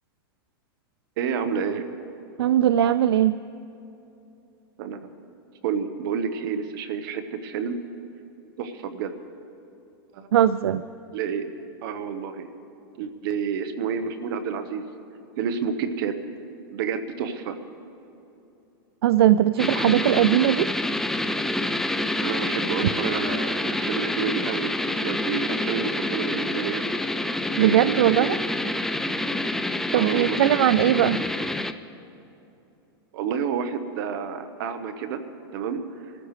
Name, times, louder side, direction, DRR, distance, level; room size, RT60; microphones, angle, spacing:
voice 1, 1.2-1.8 4.8-5.1 5.6-7.8 8.6-9.2 10.1-10.3 11.1-11.5 11.8-12.5 13.0-14.9 15.4-16.1 16.7-17.6 22.2-26.9 27.6-28.3 29.9-30.4 33.1-35.2 35.5-35.8, right 7 dB, 60° right, 9 dB, 1.3 m, -29 dB
voice 2, 2.4-3.3 10.3-10.8 19.0-20.7 27.6-28.4 29.9-31.2, right 11 dB, 85° right, 14 dB, 0.4 m, -19 dB
sound 1, 19.6-31.7, left 1 dB, 5° left, 0.5 m, -27 dB
26.5 x 14.5 x 3.3 m, 2.9 s
hypercardioid pair, 120°, 13 cm